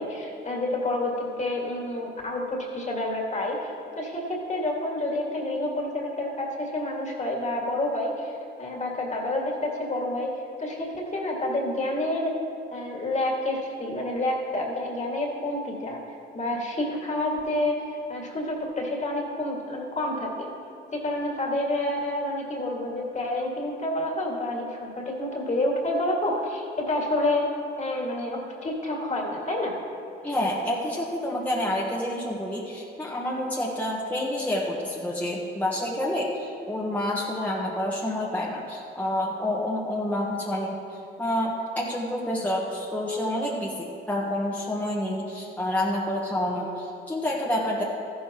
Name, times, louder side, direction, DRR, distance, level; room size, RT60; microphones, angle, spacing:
voice 1, 0.0-8.3 8.6-12.4 12.7-16.0 16.3-17.8 18.1-20.5 20.9-27.5 27.8-29.8, left 1 dB, 35° left, -1 dB, 2.2 m, -29 dB
voice 2, 30.2-47.8, left 1 dB, 10° left, -5 dB, 1.4 m, -28 dB
14.0 x 11.0 x 3.0 m, 2.7 s
cardioid pair, 90°, 20 cm